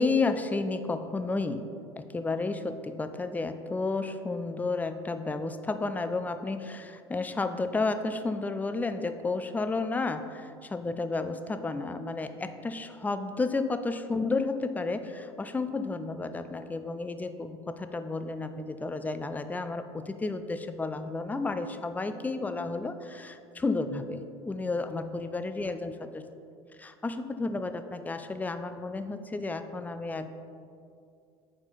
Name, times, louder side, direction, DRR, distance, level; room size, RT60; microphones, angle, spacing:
voice 1, 0.0-1.7 2.0-26.2 26.8-30.3, left 3 dB, 10° left, 9 dB, 0.4 m, -32 dB
8.6 x 4.4 x 3.9 m, 2.4 s
hypercardioid pair, 75°, 15 cm